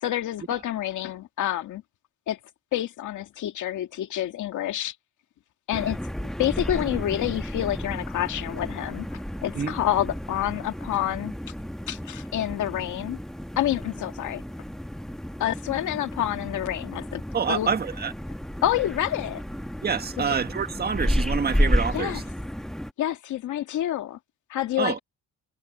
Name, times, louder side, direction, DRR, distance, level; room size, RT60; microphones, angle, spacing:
voice 1, 0.0-1.8 2.3-2.4 2.7-4.9 5.7-6.0 6.4-11.3 11.9-13.2 13.6-14.4 15.4-17.2 17.5-17.7 18.6-19.4 20.2-20.3 21.9-22.2 23.0-24.2 24.5-25.0, left 12 dB, 75° left, 2.2 m, -28 dB
sound 1, 5.7-22.9, equal, ahead, 1.3 m, -31 dB
voice 2, 17.3-18.1 19.8-22.2 24.8-25.0, right 6 dB, 30° right, 1.6 m, -27 dB
cardioid pair, 90°, 30 cm